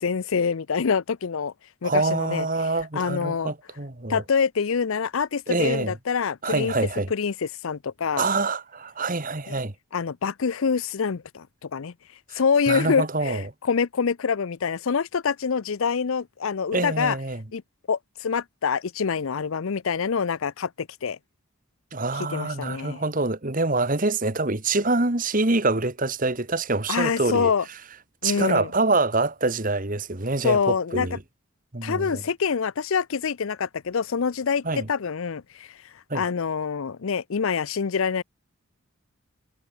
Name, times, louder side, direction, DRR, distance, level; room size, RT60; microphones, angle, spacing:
voice 1, 0.0-1.5 1.8-2.5 2.9-3.5 4.1-6.7 7.1-8.3 9.5-9.6 9.9-11.9 12.3-17.2 17.5-17.6 17.9-21.2 22.2-23.0 26.9-27.6 28.2-28.7 30.4-31.1 31.8-35.8 36.1-38.2, left 6 dB, 70° left, 0.5 m, -26 dB
voice 2, 1.8-4.2 5.5-5.9 6.4-7.1 8.2-9.7 12.3-12.4 12.7-13.4 16.7-17.4 21.9-27.5 28.2-31.2 31.7-32.2 34.6-34.9 36.1-36.2, right 3 dB, 40° right, 1.6 m, -25 dB
head